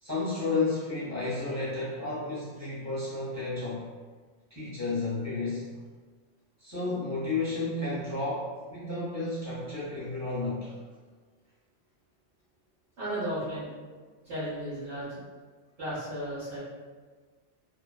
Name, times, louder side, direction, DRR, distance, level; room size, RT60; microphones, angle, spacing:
voice 1, 0.0-3.9 4.5-5.7 6.6-10.7, left 3 dB, 20° left, -9 dB, 0.4 m, -32 dB
voice 2, 13.0-13.7 14.2-15.2 15.8-16.6, right 1 dB, 55° right, -12 dB, 1.0 m, -34 dB
2.4 x 2.2 x 2.2 m, 1.5 s
omnidirectional pair, 1.2 m